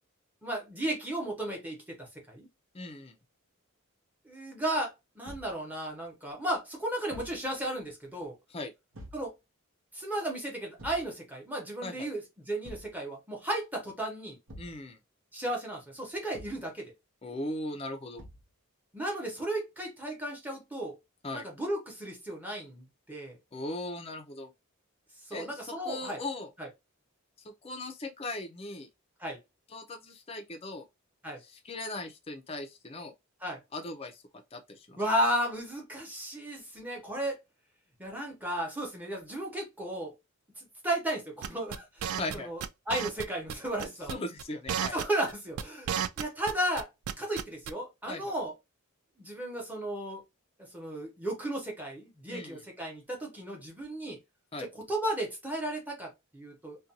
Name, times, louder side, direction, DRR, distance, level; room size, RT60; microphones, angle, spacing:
voice 1, 0.4-2.5 4.2-8.3 9.1-9.3 9.9-14.4 15.3-16.9 18.9-21.0 21.3-23.4 25.2-26.2 26.6-26.7 29.2-29.4 31.2-31.4 33.4-33.6 35.0-37.4 38.0-40.1 40.6-44.2 44.9-46.9 47.2-48.5 49.2-50.2 50.6-54.2 54.6-56.8, right 1 dB, 10° right, 0.8 m, -34 dB
voice 2, 2.7-3.2 8.5-8.7 11.8-12.1 14.6-15.0 17.2-18.2 21.2-21.5 23.5-24.5 25.3-26.5 27.4-28.9 29.7-30.9 31.4-33.1 33.7-34.2 34.5-35.0 42.2-42.5 44.1-45.0 48.1-48.3 52.3-52.6 54.5-54.7, left 2 dB, 25° left, 0.5 m, -39 dB
Thump thud, 5.2-5.6 7.1-7.4 8.9-9.3 10.8-11.1 12.6-13.0 14.5-14.8 16.3-16.7 18.2-18.5, equal, 65° right, 0.8 m, -47 dB
sound 1, 41.4-42.4 42.6-43.2 43.5-43.6 43.8-44.1 44.4-46.5 46.8-47.7, right 8 dB, 85° right, 0.3 m, -32 dB
2.5 x 2.2 x 2.7 m
head